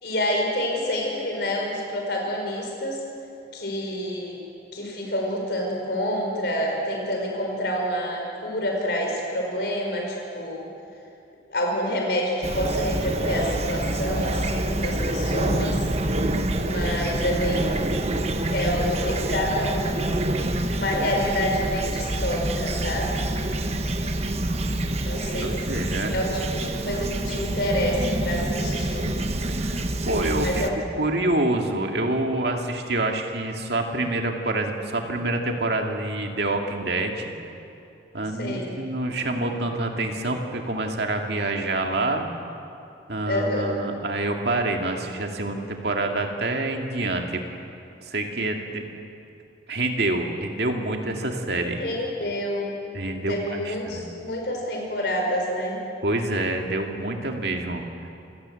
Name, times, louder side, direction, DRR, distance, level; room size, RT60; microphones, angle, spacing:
voice 1, 0.0-3.0 3.5-4.4 4.7-10.7 11.5-15.8 16.5-18.0 18.5-20.2 20.7-23.2 25.1-25.5 26.1-29.1 30.4-30.8 38.4-38.7 43.3-43.7 51.8-52.7 53.3-55.8, equal, 60° left, 0 dB, 5.2 m, -28 dB
Fowl / Chirp tweet, 12.4-30.7, right 1 dB, 35° right, 1.2 m, -27 dB
voice 2, 25.4-26.1 29.5-30.6 31.0-37.3 38.1-42.3 43.1-47.4 48.1-48.9 49.7-51.8 52.9-54.1 56.0-57.8, right 2 dB, 60° right, 2 dB, 2.4 m, -27 dB
27.5 x 17.0 x 7.9 m, 2.7 s
head